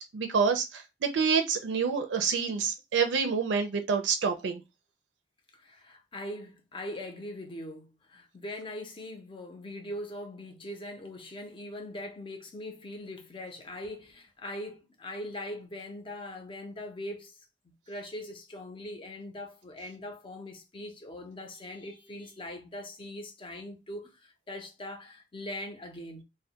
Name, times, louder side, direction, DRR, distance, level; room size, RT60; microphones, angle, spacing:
voice 1, 0.1-4.6, right 5 dB, 90° right, 0.4 m, -27 dB
voice 2, 5.5-17.4 17.6-26.2, left 1 dB, 30° left, 0.6 m, -41 dB
2.2 x 2.1 x 2.8 m
head